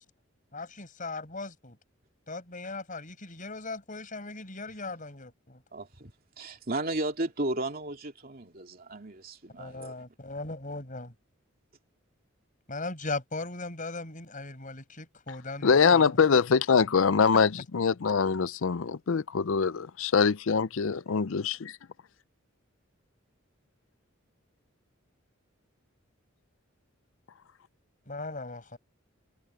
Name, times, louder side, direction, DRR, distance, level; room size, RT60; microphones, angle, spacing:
voice 1, 0.5-1.8 2.3-5.6 9.6-11.1 12.7-16.2 28.1-28.8, left 3 dB, 40° left, 6.6 m, -38 dB
voice 2, 5.7-6.1 6.4-10.0, right 2 dB, 45° right, 2.7 m, -34 dB
voice 3, 15.6-21.7, left 5 dB, 75° left, 0.5 m, -24 dB
head